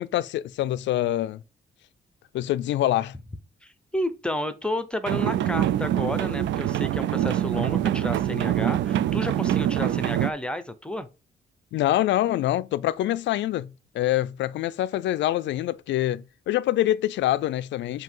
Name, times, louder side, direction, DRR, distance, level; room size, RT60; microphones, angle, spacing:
voice 1, 0.0-1.4 2.3-3.1 11.7-18.0, left 13 dB, 85° left, 0.4 m, -25 dB
voice 2, 3.6-11.1, left 1 dB, 5° left, 0.7 m, -31 dB
sound 1, 5.1-10.3, right 11 dB, 85° right, 0.4 m, -24 dB
7.8 x 2.8 x 5.4 m
cardioid pair, 150°, 18 cm